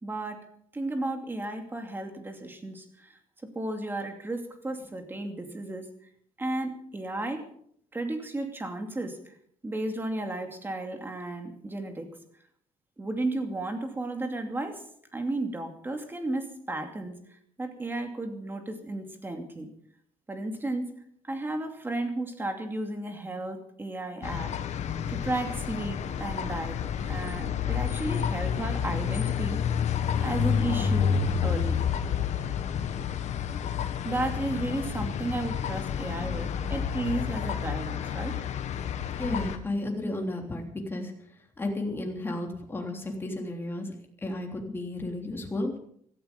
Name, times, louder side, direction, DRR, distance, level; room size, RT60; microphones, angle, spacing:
voice 1, 0.0-0.5 0.7-3.2 3.5-5.8 6.4-7.4 7.9-9.3 9.6-12.1 13.0-14.8 15.1-17.1 17.6-19.7 20.3-20.9 21.2-24.5 25.1-26.8 27.1-29.6 29.9-31.2 31.4-31.8 34.0-38.4, right 2 dB, 15° right, 5 dB, 2.6 m, -33 dB
sound 1, 24.2-39.6, left 8 dB, 55° left, 1.5 m, -29 dB
voice 2, 39.2-41.1 41.6-43.9 44.2-45.7, left 2 dB, 15° left, 1 dB, 3.3 m, -33 dB
17.0 x 14.5 x 5.3 m, 0.66 s
cardioid pair, 135°, 14 cm